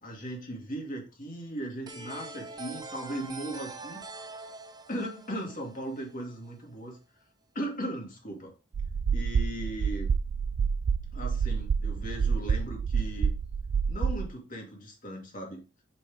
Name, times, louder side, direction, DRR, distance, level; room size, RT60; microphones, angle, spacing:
voice 1, 0.0-4.0 4.9-7.0 7.5-8.5 9.1-10.1 11.1-13.3 13.9-15.6, right 1 dB, 45° left, 0 dB, 2.3 m, -37 dB
sound 1, 1.9-6.5, right 3 dB, 20° right, 0.7 m, -44 dB
sound 2, 8.7-14.3, right 6 dB, 85° right, 0.4 m, -28 dB
6.0 x 5.8 x 3.5 m, 0.33 s
head